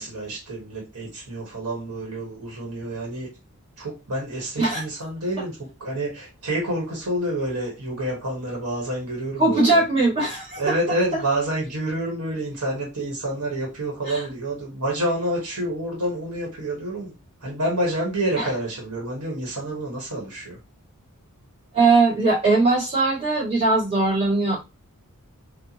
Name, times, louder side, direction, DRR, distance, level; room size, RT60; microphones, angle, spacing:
voice 1, 0.0-3.3 3.8-9.8 10.6-17.1 17.4-20.6, right 1 dB, 85° right, -1 dB, 1.3 m, -28 dB
voice 2, 9.4-10.6 21.7-24.6, right 3 dB, 25° right, -7 dB, 2.2 m, -20 dB
4.1 x 2.4 x 2.9 m, 0.27 s
head